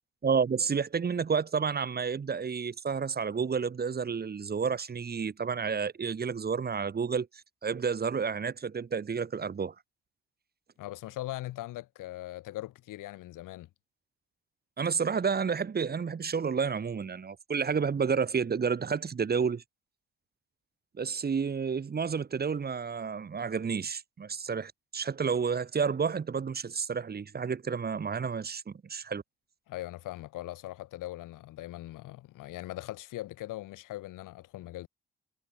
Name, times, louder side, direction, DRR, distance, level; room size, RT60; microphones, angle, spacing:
voice 1, 0.2-7.3 7.6-9.7 14.8-19.6 21.0-29.2, right 6 dB, 30° right, 0.9 m, -30 dB
voice 2, 10.8-13.7 29.7-34.9, left 16 dB, 65° left, 1.2 m, -40 dB
hypercardioid pair, 45°, 34 cm